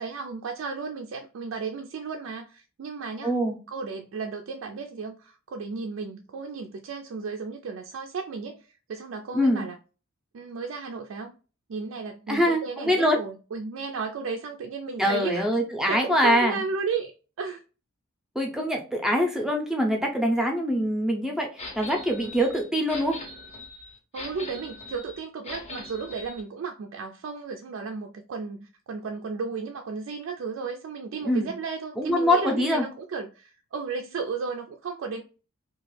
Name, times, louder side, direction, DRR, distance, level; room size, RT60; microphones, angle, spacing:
voice 1, 0.0-3.3 3.7-9.8 10.3-11.3 11.7-15.5 15.9-17.1 17.4-17.6 24.1-35.2, right 5 dB, 70° right, 0.3 m, -34 dB
voice 2, 3.2-3.5 9.3-9.6 12.3-13.2 15.0-16.6 18.4-23.1 31.2-31.5 32.0-32.8, equal, ahead, 0.6 m, -24 dB
sound 1, 21.6-26.4, left 2 dB, 30° left, 0.7 m, -41 dB
2.9 x 2.3 x 3.1 m
head